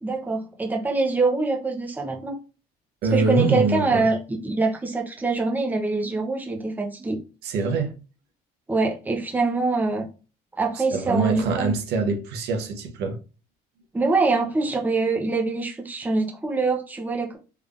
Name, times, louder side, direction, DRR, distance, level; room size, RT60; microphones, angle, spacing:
voice 1, 0.0-2.4 3.1-7.2 8.7-10.0 10.6-11.7 13.9-17.4, right 3 dB, 10° right, 0.7 m, -24 dB
voice 2, 3.0-4.1 7.4-7.9 10.7-13.2, right 4 dB, 75° right, 1.0 m, -24 dB
3.4 x 3.3 x 2.5 m
cardioid pair, 110°, 17 cm